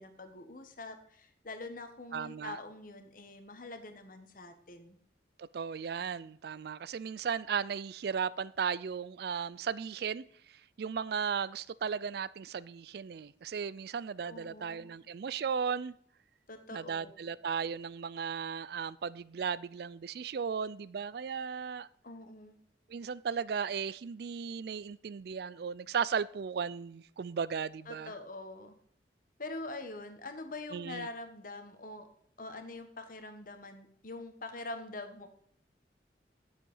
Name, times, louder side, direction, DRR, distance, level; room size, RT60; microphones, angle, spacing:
voice 1, 0.0-5.0 14.2-14.9 16.5-17.1 22.0-22.5 27.8-28.7 29.4-32.1 32.4-35.3, left 2 dB, 50° left, 1.4 m, -44 dB
voice 2, 2.1-2.6 5.4-10.2 10.8-15.9 16.7-21.9 22.9-28.1 30.7-31.1, right 6 dB, 60° right, 0.4 m, -36 dB
9.7 x 7.4 x 5.5 m
head